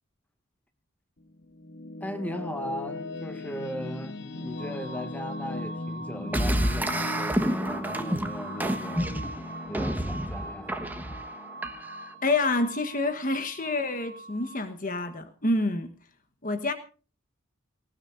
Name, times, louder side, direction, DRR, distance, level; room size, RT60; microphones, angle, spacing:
sound 1, 1.2-12.5, left 2 dB, 65° left, 1.2 m, -39 dB
voice 1, 2.0-9.2 9.7-10.7, equal, 10° left, 2.0 m, -38 dB
sound 2, 4.6-14.7, right 2 dB, 50° right, 3.5 m, -43 dB
sound 3, 6.3-12.1, right 1 dB, 10° right, 1.3 m, -30 dB
voice 2, 12.2-15.9 16.4-16.7, left 2 dB, 45° left, 1.3 m, -27 dB
19.0 x 19.0 x 2.6 m
head